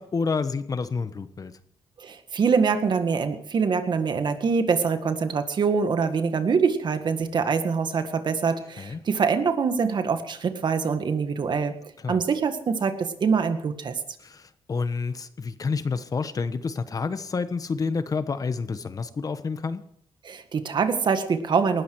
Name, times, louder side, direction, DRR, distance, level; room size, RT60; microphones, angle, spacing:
voice 1, 0.0-1.6 8.8-9.0 12.0-12.2 14.2-19.8, left 4 dB, 40° left, 11 dB, 1.2 m, -29 dB
voice 2, 2.0-11.7 12.1-14.0 20.2-21.8, right 5 dB, 55° right, 8 dB, 1.8 m, -24 dB
19.5 x 13.5 x 4.8 m, 0.70 s
cardioid pair, 95°, 9 cm